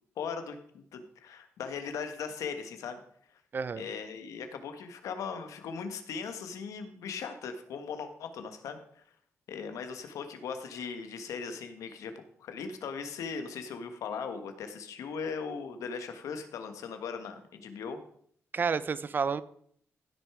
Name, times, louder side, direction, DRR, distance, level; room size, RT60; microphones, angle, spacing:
voice 1, 0.2-3.0 3.7-9.0 9.5-12.1 12.4-18.0, left 6 dB, 90° left, 7 dB, 1.5 m, -39 dB
voice 2, 3.5-3.8 18.5-19.4, right 5 dB, 40° right, 17 dB, 0.5 m, -30 dB
15.0 x 6.5 x 4.9 m, 0.63 s
cardioid pair, 120°, 5 cm